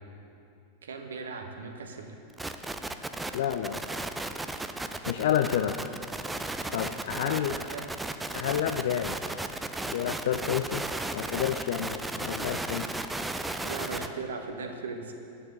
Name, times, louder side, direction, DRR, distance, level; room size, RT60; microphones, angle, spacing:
voice 1, 0.8-2.2 7.1-7.9 13.6-15.1, right 4 dB, 65° right, 4 dB, 1.1 m, -38 dB
sound 1, 2.4-14.1, right 2 dB, 10° right, 0.5 m, -35 dB
voice 2, 3.3-3.8 5.1-5.9 6.7-7.5 8.3-9.2 9.8-10.8 11.1-12.9, left 10 dB, 55° left, 8 dB, 0.4 m, -29 dB
8.5 x 7.2 x 8.2 m, 2.7 s
figure-of-eight pair, 90°, 0 cm